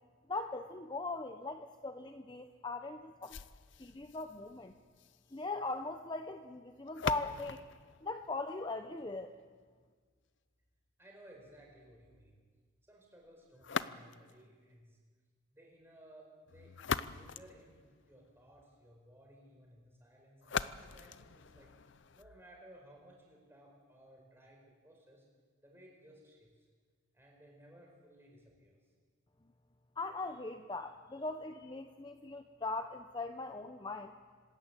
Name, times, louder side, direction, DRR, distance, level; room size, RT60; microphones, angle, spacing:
voice 1, 0.3-3.4 3.8-4.7 5.3-7.6 8.0-9.3 30.0-34.1, left 3 dB, 20° left, 7 dB, 0.7 m, -40 dB
sound 1, 3.2-9.2 13.6-14.4 16.5-18.4 20.4-22.4, left 6 dB, 55° left, 0.6 m, -42 dB
voice 2, 11.0-12.4 12.8-15.0 15.5-16.7 17.0-21.7 22.1-25.2 25.6-26.7 27.1-28.8, right 1 dB, 10° right, 0 dB, 4.8 m, -59 dB
26.0 x 13.5 x 8.4 m, 1.5 s
head